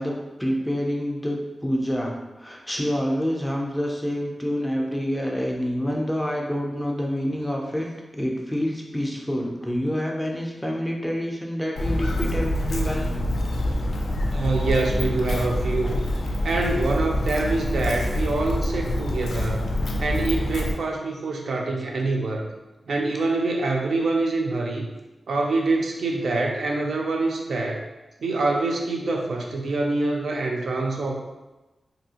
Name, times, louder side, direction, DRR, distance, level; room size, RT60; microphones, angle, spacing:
voice 1, 0.0-7.9 8.1-13.1 21.6-21.7, equal, 5° left, -1 dB, 0.4 m, -27 dB
Walk footsteps, 11.8-20.7, left 1 dB, 85° left, 0.3 m, -26 dB
voice 2, 14.3-16.0 16.4-19.7 20.0-22.4 22.9-24.9 25.3-27.8 28.2-31.1, right 3 dB, 75° right, 1 dB, 0.4 m, -25 dB
2.7 x 2.7 x 2.8 m, 1.1 s
wide cardioid pair, 170°, 0 cm